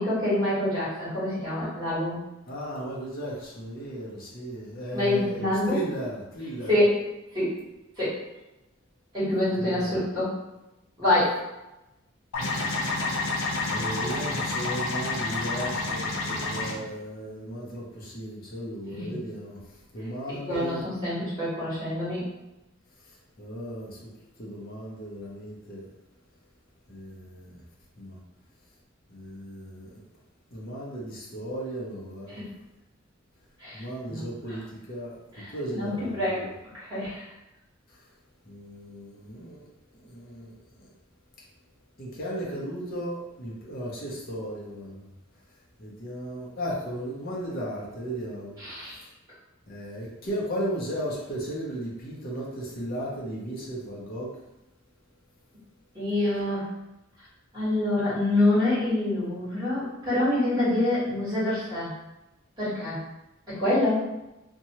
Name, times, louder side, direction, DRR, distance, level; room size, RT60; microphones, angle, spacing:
voice 1, 0.0-2.2 4.9-5.8 6.7-6.9 7.3-7.5 8.0-8.2 9.1-10.3 11.0-11.4 18.9-19.0 20.5-22.2 33.6-33.8 34.1-34.2 35.7-36.4 36.8-37.2 48.6-48.9 55.9-56.6 57.5-61.9 62.6-63.0 63.5-64.0, left 1 dB, 20° right, -10 dB, 1.4 m, -26 dB
voice 2, 2.5-6.7 9.6-10.0 12.5-12.6 13.7-20.8 22.9-24.1 24.4-26.0 26.9-27.6 28.0-28.2 29.1-30.0 30.5-32.5 33.7-36.4 37.9-38.1 38.4-40.9 42.0-45.1 45.5-49.1 49.7-54.4, right 1 dB, 45° left, -5 dB, 0.7 m, -36 dB
sound 1, 12.3-16.7, left 2 dB, 85° left, 0.6 m, -29 dB
2.7 x 2.2 x 2.9 m, 0.96 s
head